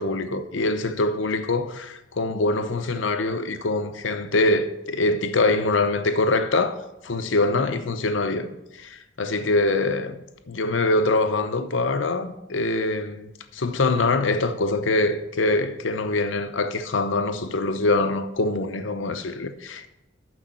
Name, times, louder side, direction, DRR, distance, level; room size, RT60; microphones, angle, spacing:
voice 1, 0.0-8.5 8.8-19.9, left 2 dB, 85° left, 0.7 m, -24 dB
6.4 x 6.3 x 7.4 m
head